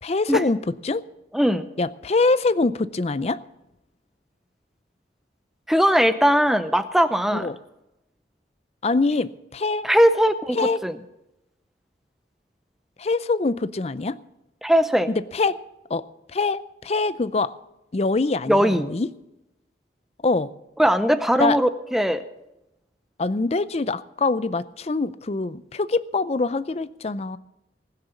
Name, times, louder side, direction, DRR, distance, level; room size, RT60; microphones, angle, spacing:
voice 1, 0.0-0.6 0.8-1.0 1.8-3.4 7.3-7.6 8.8-9.9 10.5-10.8 13.0-14.2 15.1-15.6 15.9-16.0 16.3-17.5 17.9-19.1 20.2-20.5 21.4-21.6 23.2-27.4, left 3 dB, 35° left, 16 dB, 0.5 m, -24 dB
voice 2, 1.3-1.7 5.7-7.5 9.8-11.0 14.6-15.1 18.5-18.9 20.8-22.2, equal, ahead, 10 dB, 0.6 m, -19 dB
19.5 x 6.7 x 7.2 m, 0.90 s
head